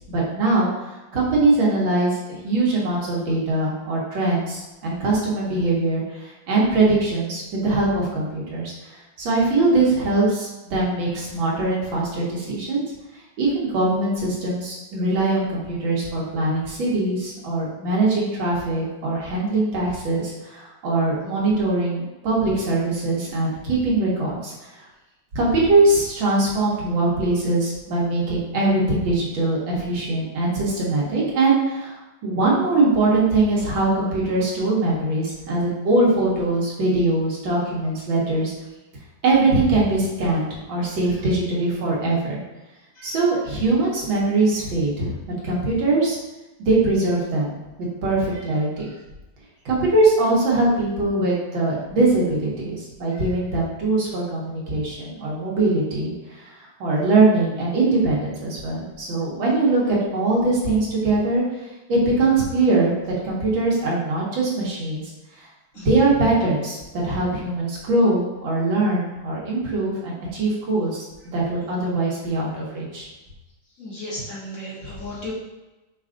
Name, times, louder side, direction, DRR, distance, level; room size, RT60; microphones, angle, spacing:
voice 1, 0.1-12.9 13.4-24.5 25.4-38.5 39.2-42.4 43.0-45.2 45.4-46.2 46.6-47.5 48.0-48.9 49.7-61.4 61.9-62.9 63.2-65.0 65.4-65.5 65.8-71.0 71.3-73.1, right 2 dB, 85° right, -5 dB, 2.0 m, -22 dB
voice 2, 73.8-75.3, left 1 dB, 45° left, -8 dB, 1.6 m, -34 dB
5.4 x 2.4 x 3.7 m, 1.1 s
omnidirectional pair, 2.1 m